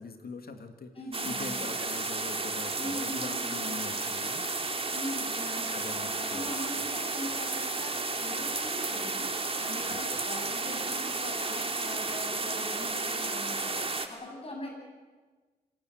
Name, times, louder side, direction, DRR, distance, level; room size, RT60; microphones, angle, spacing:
voice 1, 0.0-0.9 1.2-4.5 5.7-6.5 9.8-10.1, left 4 dB, 70° left, 6 dB, 2.4 m, -42 dB
voice 2, 0.9-1.7 2.8-3.7 4.9-14.7, left 1 dB, 35° left, 0 dB, 7.7 m, -41 dB
sound 1, 1.1-14.1, right 3 dB, 35° right, 2.3 m, -32 dB
26.5 x 18.0 x 8.0 m, 1.4 s
cardioid pair, 65°, 16 cm